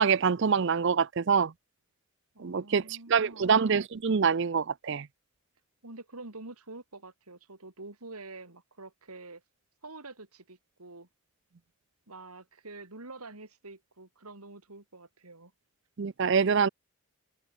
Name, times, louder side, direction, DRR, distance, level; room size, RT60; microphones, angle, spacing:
voice 1, 0.0-1.5 2.4-5.1 16.0-16.7, right 6 dB, 55° right, 0.5 m, -25 dB
voice 2, 2.3-3.6 5.8-9.4 9.8-11.1 12.1-15.5, right 2 dB, 90° right, 3.4 m, -47 dB
open air
head